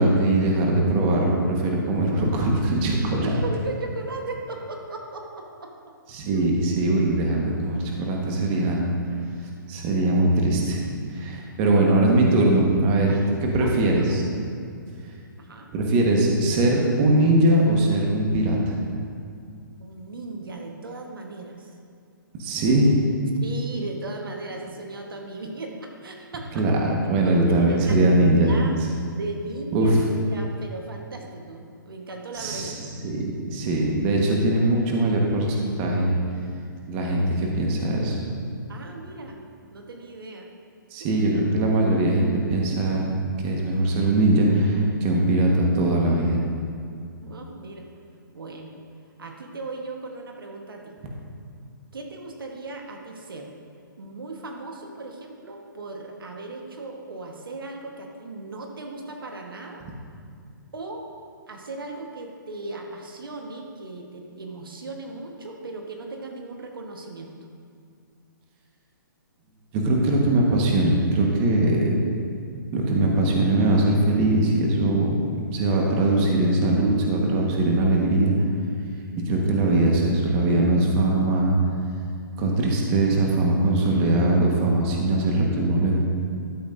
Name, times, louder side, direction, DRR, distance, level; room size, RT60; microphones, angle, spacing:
voice 1, 0.0-3.3 6.1-8.8 9.7-10.8 11.1-13.1 13.4-14.2 15.7-18.8 22.4-23.0 26.5-28.5 29.7-30.0 32.3-36.2 36.9-38.2 40.9-43.1 43.4-46.4 69.7-71.9 72.7-78.3 79.3-81.6 82.4-86.0, right 2 dB, 30° right, -1 dB, 1.4 m, -21 dB
voice 2, 3.1-5.7 6.3-6.5 11.6-11.8 13.1-14.1 15.4-15.7 19.8-21.7 23.4-26.7 27.2-27.9 28.4-28.8 29.2-32.7 38.7-39.4 39.7-40.5 41.0-41.3 47.2-47.9 48.3-48.7 49.2-51.0 51.9-53.5 54.0-59.8 60.7-61.0 61.5-67.3, right 2 dB, 80° right, 2 dB, 1.3 m, -37 dB
12.5 x 8.0 x 2.6 m, 2.3 s
hypercardioid pair, 145°, 11 cm